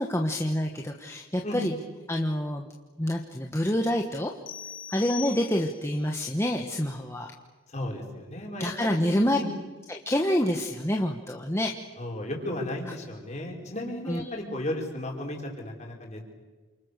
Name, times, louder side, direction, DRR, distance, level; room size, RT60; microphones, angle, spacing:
voice 1, 0.0-1.7 2.1-2.7 3.0-4.3 4.9-7.3 8.6-9.4 9.9-11.7 14.1-14.2, left 1 dB, 15° left, 2 dB, 1.4 m, -27 dB
voice 2, 1.4-1.8 7.7-9.5 12.0-16.2, left 1 dB, 35° left, 0 dB, 5.1 m, -34 dB
sound 1, 4.5-6.0, left 8 dB, 70° left, 3.4 m, -40 dB
29.0 x 27.0 x 6.8 m, 1.3 s
head